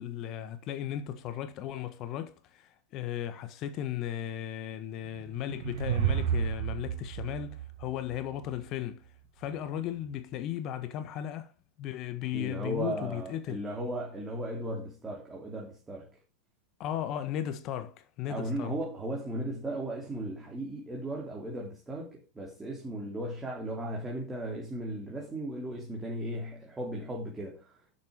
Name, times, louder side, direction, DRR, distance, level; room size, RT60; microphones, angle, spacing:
voice 1, 0.0-9.1 9.4-11.5 11.8-13.6 16.8-18.7, left 11 dB, 35° left, 1.5 m, -36 dB
sound 1, 5.1-8.5, right 9 dB, 55° right, 1.3 m, -32 dB
voice 2, 12.3-16.1 18.3-27.8, right 1 dB, 15° right, 3.2 m, -36 dB
12.0 x 7.5 x 5.0 m
figure-of-eight pair, 90°, 0 cm